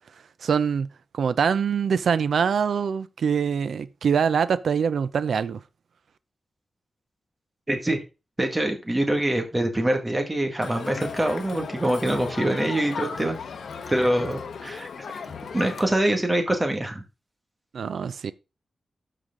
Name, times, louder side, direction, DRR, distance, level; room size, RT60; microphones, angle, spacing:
voice 1, 0.4-5.6 17.7-18.3, right 6 dB, 80° right, 0.6 m, -24 dB
voice 2, 7.7-8.0 8.4-13.4 13.9-15.2 15.5-17.0, right 1 dB, 15° right, 2.0 m, -24 dB
Crowd, 10.6-15.9, left 6 dB, 80° left, 1.1 m, -36 dB
12.5 x 4.9 x 3.8 m
wide cardioid pair, 145°, 0 cm